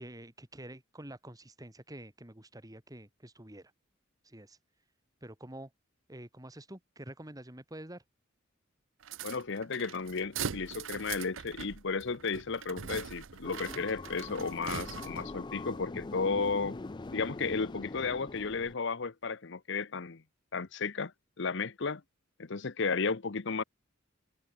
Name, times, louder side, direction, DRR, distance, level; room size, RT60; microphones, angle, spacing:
voice 1, 0.0-3.7 4.2-4.6 5.2-5.7 6.1-8.0, right 1 dB, 20° right, 2.6 m, -47 dB
sound 1, 9.0-15.4, right 7 dB, 70° right, 0.7 m, -42 dB
voice 2, 9.2-16.8 17.1-20.2 20.5-21.1 21.4-22.0 22.4-23.6, left 4 dB, 60° left, 0.9 m, -33 dB
sound 2, 13.4-18.7, left 3 dB, 25° left, 0.4 m, -42 dB
head